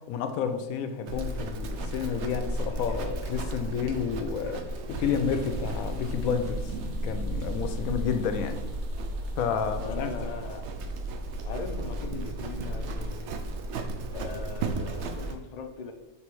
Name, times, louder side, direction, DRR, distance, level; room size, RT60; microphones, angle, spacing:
voice 1, 0.1-6.7 7.0-8.6 9.4-10.1, left 7 dB, 80° left, 1.1 m, -30 dB
Livestock farm animals working animals, 1.1-15.4, right 1 dB, 65° right, 0.8 m, -34 dB
sound 1, 4.9-10.5, right 2 dB, 85° right, 1.5 m, -44 dB
voice 2, 9.8-10.6 11.4-13.4 14.1-15.9, left 4 dB, 50° left, 0.4 m, -39 dB
6.2 x 3.3 x 4.6 m
omnidirectional pair, 1.5 m